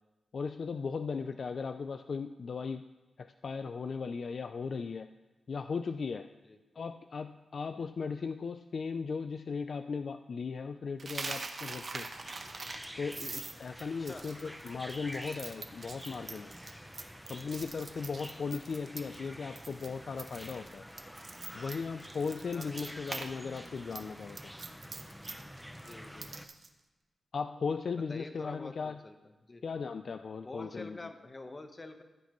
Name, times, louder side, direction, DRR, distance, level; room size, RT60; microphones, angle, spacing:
voice 1, 0.3-2.8 3.2-5.1 5.5-6.3 6.8-12.1 13.0-16.5 17.3-20.9 21.5-24.5 27.3-29.0 29.6-31.1, left 5 dB, 60° left, 8 dB, 0.3 m, -37 dB
Coin (dropping), 11.0-19.3 19.6-19.9 20.2-23.3 23.6-26.7, right 3 dB, 50° right, 0.9 m, -43 dB
sound 1, 11.7-26.5, equal, ahead, 0.7 m, -48 dB
voice 2, 25.8-26.3 28.1-29.1 29.5-29.6 30.4-32.0, left 2 dB, 35° left, 7 dB, 1.0 m, -46 dB
14.5 x 8.2 x 3.1 m, 1.2 s
wide cardioid pair, 90°, 0 cm